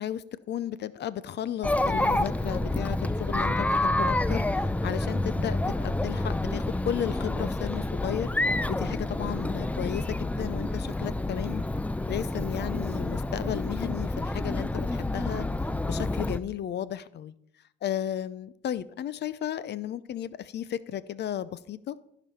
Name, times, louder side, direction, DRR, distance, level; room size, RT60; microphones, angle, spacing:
voice 1, 0.0-8.3 8.7-11.6 12.1-15.5 15.8-17.3 17.8-22.0, left 10 dB, 60° left, 17 dB, 0.6 m, -34 dB
Chatter, 1.6-16.4, left 2 dB, 5° left, 0.5 m, -28 dB
14.0 x 5.1 x 5.6 m, 0.72 s
cardioid pair, 90°, 20 cm